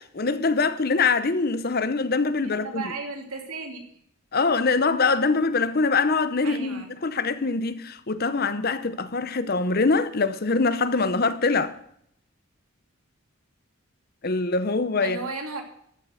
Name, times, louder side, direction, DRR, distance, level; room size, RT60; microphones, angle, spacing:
voice 1, 0.0-2.8 4.3-11.8 14.2-15.2, left 4 dB, 45° left, 0.8 m, -24 dB
voice 2, 2.4-3.8 6.4-6.9 15.0-15.6, right 3 dB, 80° right, 2.8 m, -34 dB
14.0 x 7.5 x 6.4 m
head